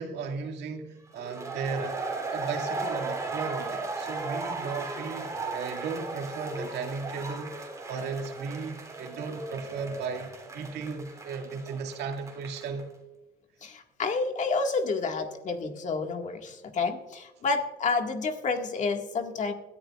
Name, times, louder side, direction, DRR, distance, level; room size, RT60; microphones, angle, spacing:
voice 1, 0.0-2.0 2.3-7.5 7.9-12.8, right 5 dB, 80° right, 3 dB, 2.2 m, -35 dB
sound 1, 1.2-12.8, right 3 dB, 20° right, 3.2 m, -36 dB
voice 2, 13.6-19.5, left 4 dB, 45° left, 4 dB, 1.9 m, -29 dB
21.0 x 14.0 x 2.5 m, 1.0 s
cardioid pair, 110°, 17 cm